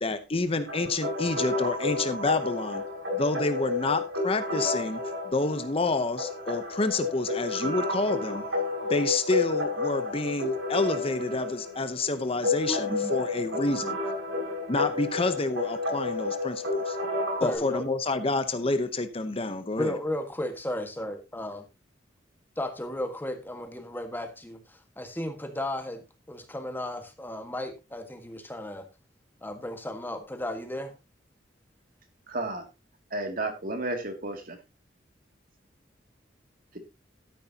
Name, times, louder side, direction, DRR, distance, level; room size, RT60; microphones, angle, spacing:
voice 1, 0.0-2.8 3.1-8.4 8.9-14.0 14.7-17.0 17.4-20.0, left 3 dB, 30° left, 11 dB, 0.8 m, -28 dB
sound 1, 0.7-17.5, left 3 dB, 80° right, 7.1 m, -31 dB
voice 2, 12.7-13.1 17.4-17.8 19.8-21.6 22.6-28.8 29.4-30.9, left 1 dB, 10° left, 6 dB, 1.5 m, -34 dB
voice 3, 32.3-32.7 33.1-34.6, right 2 dB, 50° right, 5 dB, 2.5 m, -32 dB
12.5 x 10.0 x 2.8 m, 0.26 s
head